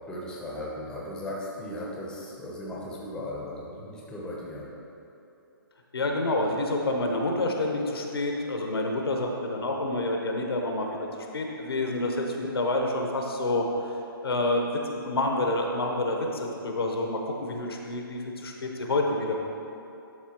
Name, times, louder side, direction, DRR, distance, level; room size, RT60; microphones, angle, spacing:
voice 1, 0.1-4.7, left 1 dB, 5° left, -4 dB, 0.9 m, -37 dB
voice 2, 5.9-11.1 11.3-13.9 14.2-19.4, left 2 dB, 85° left, 1 dB, 1.2 m, -28 dB
11.0 x 4.4 x 3.0 m, 2.9 s
hypercardioid pair, 150°, 12 cm